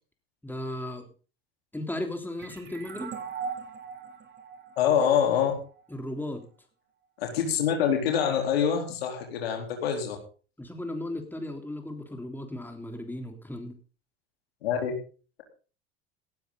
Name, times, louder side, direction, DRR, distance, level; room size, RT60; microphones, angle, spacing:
voice 1, 0.4-1.0 1.7-3.1 5.9-6.5 10.6-13.8, left 1 dB, 5° left, 4 dB, 3.6 m, -36 dB
sound 1, 2.4-5.8, right 6 dB, 35° right, 3.3 m, -40 dB
voice 2, 4.8-5.5 7.2-10.2 14.6-14.9, left 8 dB, 80° left, 2 dB, 4.0 m, -25 dB
18.0 x 12.5 x 4.0 m, 0.38 s
hypercardioid pair, 75°, 30 cm